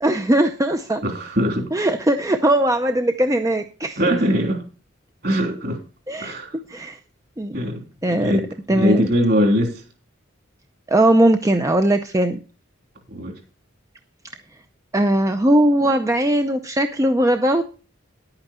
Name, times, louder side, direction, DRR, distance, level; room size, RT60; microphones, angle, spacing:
voice 1, 0.0-1.0 1.7-4.0 6.1-7.0 7.4-7.6 8.0-8.3 8.7-9.0 10.9-12.4 14.9-17.6, right 1 dB, 15° right, 7 dB, 0.5 m, -19 dB
voice 2, 1.0-1.7 4.0-4.6 5.2-5.8 6.2-6.6 7.5-9.8 13.1-13.3, equal, 50° right, 3 dB, 3.2 m, -21 dB
11.0 x 8.9 x 4.3 m, 0.36 s
head